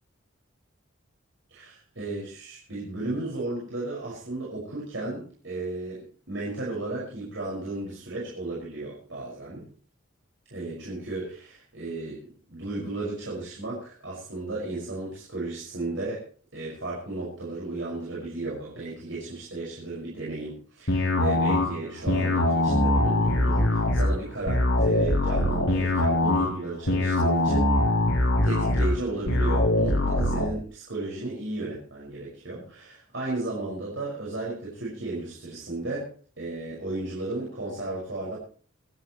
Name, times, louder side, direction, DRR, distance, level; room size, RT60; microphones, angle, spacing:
voice 1, 1.5-9.7 10.5-12.2 12.5-16.2 16.5-27.7 28.3-38.4, right 2 dB, 70° right, -5 dB, 5.9 m, -34 dB
sound 1, 20.9-30.5, left 1 dB, 90° left, 7.2 m, -23 dB
25.0 x 12.0 x 3.2 m, 0.42 s
head